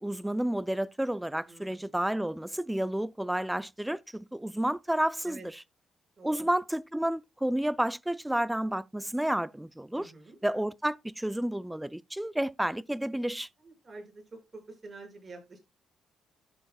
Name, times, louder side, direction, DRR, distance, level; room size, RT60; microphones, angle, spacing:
voice 1, 0.0-5.6 6.2-10.1 10.4-13.5, right 1 dB, 5° right, 0.4 m, -31 dB
voice 2, 1.5-2.0 5.2-5.5 6.2-6.5 9.9-10.4 13.6-15.6, right 3 dB, 30° right, 6.5 m, -48 dB
12.5 x 7.9 x 2.3 m
cardioid pair, 90°, 0 cm